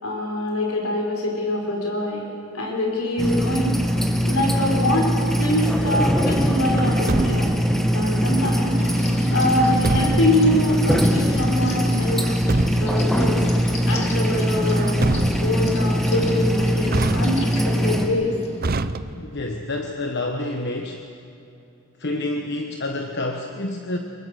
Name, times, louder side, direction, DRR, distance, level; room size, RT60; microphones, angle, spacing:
voice 1, 0.0-2.2 2.5-3.8 4.2-5.1 5.4-7.5 7.9-8.8 9.3-12.3 12.7-13.4 13.9-15.0 15.4-18.3, left 1 dB, 80° left, -1 dB, 4.5 m, -24 dB
sound 1, 3.2-18.1, equal, ahead, 1.7 m, -22 dB
Truck, 6.8-7.7 9.6-10.4 12.1-13.1 14.7-15.7 16.9-17.7 18.6-19.5, right 3 dB, 45° right, 0.7 m, -27 dB
sound 2, 8.8-18.6, equal, 30° left, 2.4 m, -34 dB
voice 2, 19.2-21.1 22.0-24.0, left 2 dB, 50° left, 4 dB, 1.3 m, -28 dB
24.5 x 23.0 x 6.5 m, 2.8 s
head